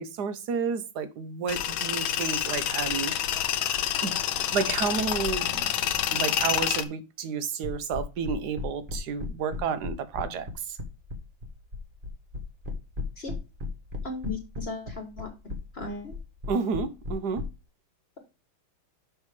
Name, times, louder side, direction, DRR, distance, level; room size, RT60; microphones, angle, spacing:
voice 1, 0.0-3.1 4.0-10.8 16.5-17.4, right 6 dB, 60° right, 1.3 m, -31 dB
Tools, 1.5-6.8, left 10 dB, 90° left, 1.6 m, -28 dB
sound 1, 7.6-17.4, left 3 dB, 30° right, 1.4 m, -35 dB
voice 2, 14.0-15.3 15.7-16.1, left 3 dB, 35° left, 1.3 m, -36 dB
6.4 x 5.5 x 4.8 m
omnidirectional pair, 2.2 m